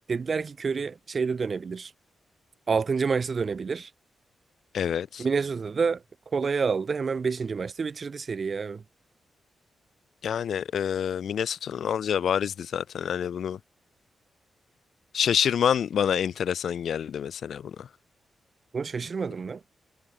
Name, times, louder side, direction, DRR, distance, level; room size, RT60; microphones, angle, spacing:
voice 1, 0.1-1.9 2.7-3.9 5.2-8.8 18.7-19.6, right 5 dB, 40° right, 0.5 m, -28 dB
voice 2, 4.7-5.2 10.2-13.6 15.1-17.9, left 8 dB, 70° left, 0.4 m, -27 dB
wide cardioid pair, 145°, 0 cm